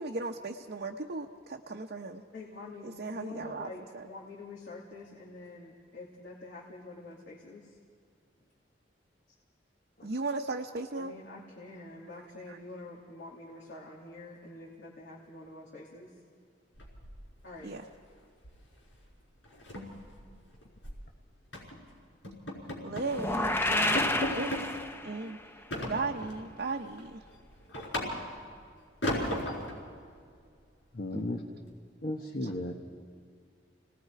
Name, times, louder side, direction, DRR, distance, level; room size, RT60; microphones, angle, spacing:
voice 1, 0.0-2.2 2.8-4.1 10.0-11.1 12.2-12.6 17.6-17.9 22.8-24.7 25.0-25.4 25.8-27.2 31.1-31.6 32.4-32.5, right 3 dB, 55° right, 1 dB, 0.8 m, -37 dB
voice 2, 2.3-7.7 11.0-16.1 17.4-17.7, left 2 dB, 75° left, -5 dB, 2.7 m, -46 dB
sound 1, 16.8-17.6 17.9-18.1 18.4-18.7 18.9-19.0 19.4-21.0 21.5-21.8 22.2-23.2 23.5-23.6 23.9-24.7 25.7-26.4 26.9-28.5 29.0-29.8, left 1 dB, 90° left, 5.5 m, -35 dB
sound 2, 23.1-25.3, left 1 dB, 15° left, 0.8 m, -29 dB
voice 3, 30.9-31.4 32.0-32.7, left 1 dB, 55° left, 1 dB, 1.2 m, -34 dB
29.5 x 19.5 x 4.7 m, 2.1 s
head